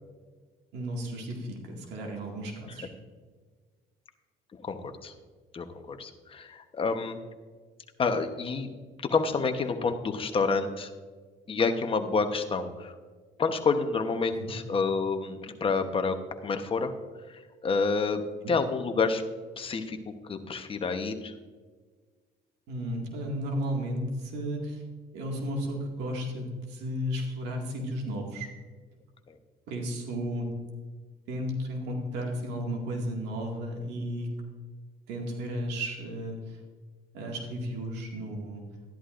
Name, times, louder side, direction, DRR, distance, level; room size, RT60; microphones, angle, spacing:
voice 1, 0.7-2.9 14.4-14.5 18.4-18.5 22.7-24.8 25.1-28.5 29.7-30.5 31.3-34.3 35.1-36.6 37.1-38.6, equal, 90° right, 0 dB, 2.1 m, -34 dB
voice 2, 4.6-5.1 5.5-7.2 8.0-8.7 9.1-10.9 11.5-12.9 13.4-16.2 16.4-16.9 17.3-18.2 18.5-19.2 19.6-21.3 29.3-29.4, left 4 dB, 30° left, 7 dB, 1.0 m, -28 dB
13.0 x 11.0 x 2.6 m, 1.5 s
cardioid pair, 110°, 17 cm